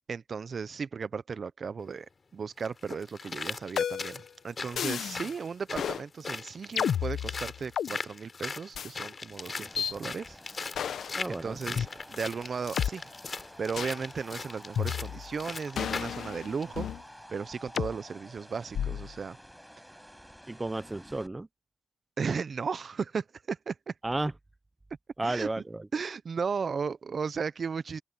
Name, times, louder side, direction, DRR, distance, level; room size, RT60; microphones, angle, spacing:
voice 1, 0.1-2.1 2.3-10.4 11.3-16.9 17.3-19.4 22.2-23.9 25.2-25.5 25.9-28.0, right 5 dB, 55° right, 0.8 m, -35 dB
sound 1, 1.8-1.9 2.6-16.2 16.6-16.7, left 4 dB, 45° left, 3.6 m, -40 dB
sound 2, 3.8-4.2 4.8-5.3 5.7-6.0 6.8-7.9 8.7-8.9 9.8-9.9 10.7-11.2 11.8-11.9 12.8-12.9 13.8-14.0 14.8-15.3 15.8-17.0 17.8-17.9 18.7-19.1, left 8 dB, 75° left, 1.1 m, -32 dB
sound 3, 9.3-21.3, equal, ahead, 8.0 m, -51 dB
voice 2, 11.2-11.6 20.5-21.5 24.0-24.3 25.2-25.9, right 2 dB, 20° right, 0.8 m, -32 dB
cardioid pair, 55°, 0 cm